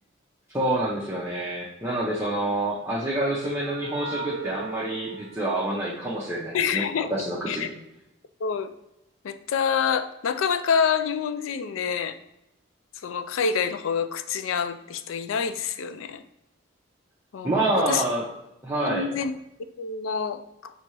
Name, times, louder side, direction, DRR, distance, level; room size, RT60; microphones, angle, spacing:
voice 1, 0.5-7.7 17.4-18.2 18.6-19.1, right 1 dB, 10° right, -7 dB, 0.6 m, -27 dB
sound 1, 2.4-6.3, right 5 dB, 90° right, 0.6 m, -40 dB
voice 2, 6.5-7.1 7.5-7.7 8.4-8.7 9.2-12.1 13.0-16.2 17.3-18.0 18.8-19.3 19.8-20.7, left 6 dB, 80° left, 11 dB, 0.4 m, -27 dB
5.9 x 2.8 x 3.0 m, 0.86 s
head